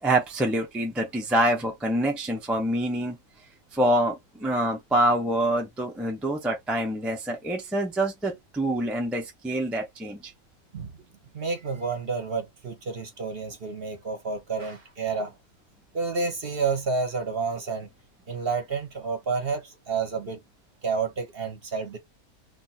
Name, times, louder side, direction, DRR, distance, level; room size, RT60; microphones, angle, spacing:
voice 1, 0.0-3.2 3.7-10.3, right 1 dB, ahead, 0.5 m, -26 dB
voice 2, 11.3-15.4 15.9-17.9 18.3-20.4 20.8-22.0, right 4 dB, 45° right, 1.0 m, -30 dB
2.6 x 2.5 x 4.1 m
omnidirectional pair, 1.6 m